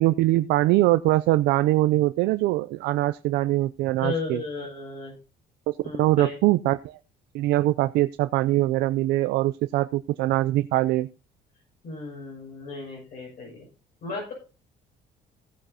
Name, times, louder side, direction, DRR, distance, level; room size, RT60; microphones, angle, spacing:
voice 1, 0.0-4.4 5.7-7.0 7.3-11.1, right 16 dB, 85° right, 11 dB, 0.5 m, -22 dB
voice 2, 4.0-5.1 5.8-6.3 11.8-13.7 14.0-14.3, left 3 dB, 55° left, -3 dB, 6.6 m, -34 dB
16.5 x 9.0 x 2.8 m, 0.33 s
cardioid pair, 110°, 17 cm